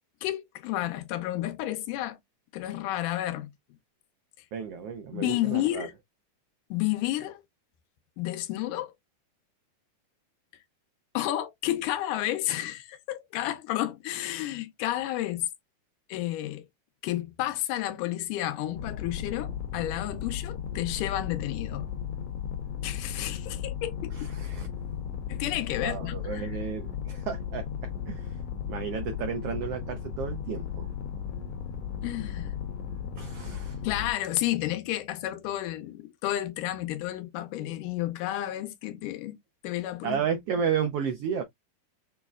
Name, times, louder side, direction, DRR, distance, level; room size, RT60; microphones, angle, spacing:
voice 1, 0.2-2.2 2.5-3.5 5.1-5.9 6.7-7.4 8.2-8.9 11.1-15.5 16.1-16.6 17.0-21.9 22.8-24.2 25.3-26.5 32.0-32.5 33.8-39.4 39.6-40.2, left 14 dB, 80° left, 2.3 m, -31 dB
voice 2, 4.5-5.9 24.1-24.7 25.8-28.4 28.7-30.9 33.2-33.8 40.0-41.4, right 7 dB, 80° right, 1.3 m, -32 dB
sound 1, 18.7-34.1, left 8 dB, 65° left, 1.7 m, -35 dB
6.8 x 3.1 x 2.4 m
omnidirectional pair, 3.7 m